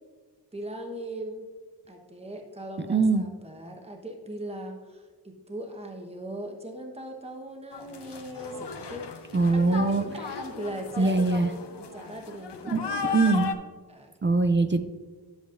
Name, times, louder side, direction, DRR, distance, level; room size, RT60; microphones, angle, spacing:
voice 1, 0.5-1.5 1.9-13.3 13.9-14.3, right 1 dB, 15° right, 2 dB, 1.0 m, -39 dB
voice 2, 2.9-3.2 9.3-10.0 11.0-11.5 12.7-12.8 13.1-13.5 14.2-14.8, right 3 dB, 30° right, 9 dB, 0.4 m, -22 dB
sound 1, 7.7-13.5, left 5 dB, 80° left, 0.8 m, -36 dB
10.0 x 8.0 x 2.5 m, 1.4 s
wide cardioid pair, 85°, 41 cm